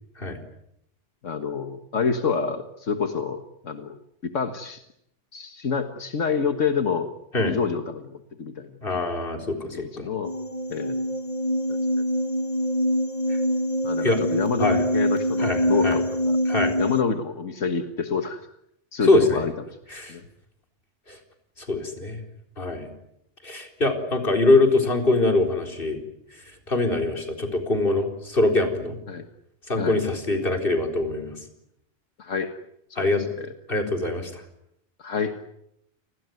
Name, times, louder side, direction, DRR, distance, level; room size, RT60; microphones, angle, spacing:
voice 1, 1.2-4.0 4.2-4.8 5.3-7.1 7.5-8.8 9.6-10.3 10.7-11.0 11.7-11.8 13.8-16.4 16.8-18.4 18.9-19.5 20.1-20.2 29.1-29.3 29.8-30.0 32.2-32.5 32.9-33.1 33.4-33.5 35.0-35.4, left 5 dB, 85° left, 7 dB, 1.9 m, -28 dB
voice 2, 8.8-10.1 13.3-13.4 14.0-14.2 14.6-14.8 15.4-16.0 16.5-16.8 19.0-19.4 19.9-20.1 21.1-21.2 21.6-22.2 22.6-22.9 23.4-26.0 26.7-29.0 29.7-31.4 33.0-33.2 33.7-34.4, left 2 dB, 45° left, 4 dB, 4.4 m, -23 dB
sound 1, 10.2-17.0, equal, 30° left, 1.4 m, -25 dB
29.5 x 20.5 x 9.4 m, 0.78 s
omnidirectional pair, 1.2 m